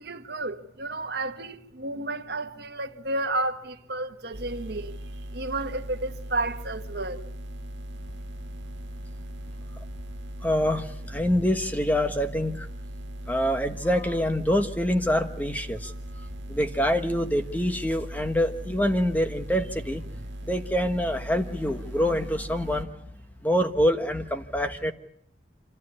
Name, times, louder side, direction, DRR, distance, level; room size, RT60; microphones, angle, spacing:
voice 1, 0.0-7.2 15.8-16.3, right 2 dB, 60° right, 1.5 m, -32 dB
sound 1, 4.3-22.8, right 1 dB, 85° right, 1.8 m, -39 dB
voice 2, 10.4-12.7 13.3-15.9 16.5-20.0 20.4-22.9 23.4-24.9, equal, 10° left, 1.3 m, -25 dB
26.5 x 15.0 x 9.9 m
head